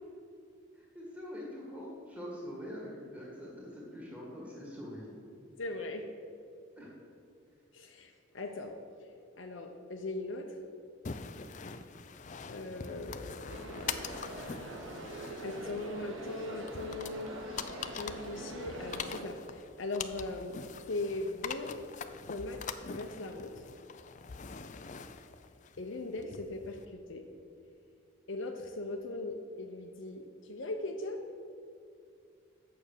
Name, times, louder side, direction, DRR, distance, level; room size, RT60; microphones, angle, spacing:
voice 1, 0.7-5.1 6.8-6.9, equal, 5° right, -5 dB, 2.0 m, -44 dB
voice 2, 5.6-6.0 7.7-8.7 9.4-10.5 12.5-14.0 15.4-20.6 20.9-21.8 22.3-23.5 25.8-27.3 28.3-31.2, left 2 dB, 65° left, 3 dB, 0.7 m, -39 dB
sound 1, 11.0-26.8, left 6 dB, 35° left, 0.4 m, -44 dB
sound 2, 13.5-19.2, right 1 dB, 70° right, 1.3 m, -43 dB
8.9 x 6.8 x 6.5 m, 2.5 s
head